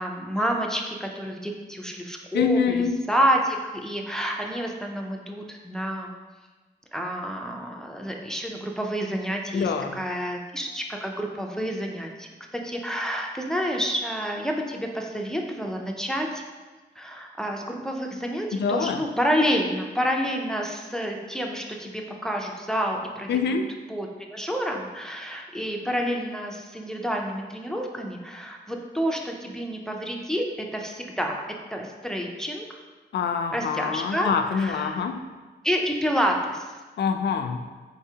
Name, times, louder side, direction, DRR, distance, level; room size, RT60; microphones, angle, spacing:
voice 1, 0.0-2.8 3.1-6.1 6.9-16.4 17.0-23.6 23.9-31.4 31.7-32.7 33.5-34.3 34.6-35.1 35.6-36.7, equal, 5° left, 1 dB, 0.4 m, -29 dB
voice 2, 2.3-3.0 9.5-10.0 18.5-19.0 23.3-23.7 33.1-35.2 37.0-37.6, left 6 dB, 80° left, 6 dB, 0.4 m, -25 dB
4.6 x 4.1 x 2.7 m, 1.3 s
wide cardioid pair, 160°, 17 cm